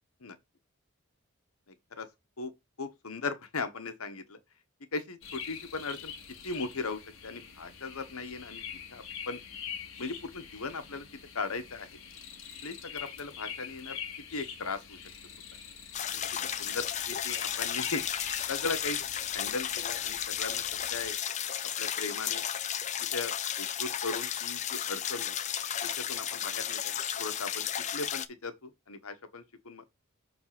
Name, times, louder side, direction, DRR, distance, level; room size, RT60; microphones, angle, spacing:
voice 1, 2.8-4.4 4.9-6.1 6.4-9.4 10.0-11.0 11.3-11.9 12.6-14.0 14.3-15.0 16.1-16.2 16.6-18.0 18.5-19.0 19.3-20.6 20.9-21.2 21.8-22.4 23.1-25.3 25.8-27.6 27.9-29.8, left 3 dB, 85° left, 1.2 m, -38 dB
sound 1, 5.2-21.1, left 7 dB, 65° left, 1.4 m, -44 dB
sound 2, 15.9-28.3, left 9 dB, 35° left, 0.4 m, -34 dB
6.6 x 3.6 x 5.9 m
head